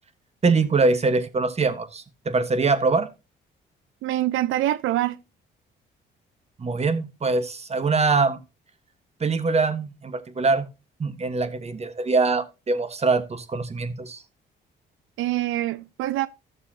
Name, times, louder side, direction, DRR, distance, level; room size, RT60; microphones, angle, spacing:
voice 1, 0.4-3.1 6.6-8.4 9.2-10.6 11.0-14.2, right 4 dB, 30° right, 1.4 m, -23 dB
voice 2, 4.0-5.2 15.2-16.3, right 14 dB, 85° right, 0.5 m, -25 dB
14.0 x 6.9 x 2.9 m
cardioid pair, 90°, 20 cm